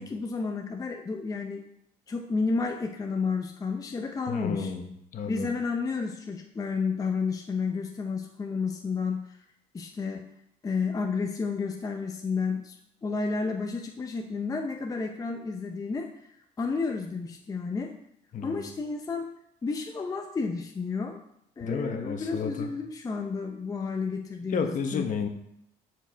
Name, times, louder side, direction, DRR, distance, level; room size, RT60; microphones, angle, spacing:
voice 1, 0.0-1.7 2.1-4.7 5.3-9.4 9.7-10.3 10.6-16.1 16.6-17.9 18.4-19.3 19.6-21.2 21.6-25.0, left 4 dB, 20° left, 3 dB, 0.6 m, -31 dB
voice 2, 4.3-5.5 18.3-18.6 21.6-22.7 24.5-25.3, left 6 dB, 50° left, 5 dB, 1.0 m, -32 dB
7.1 x 4.7 x 4.4 m, 0.77 s
cardioid pair, 110°, 17 cm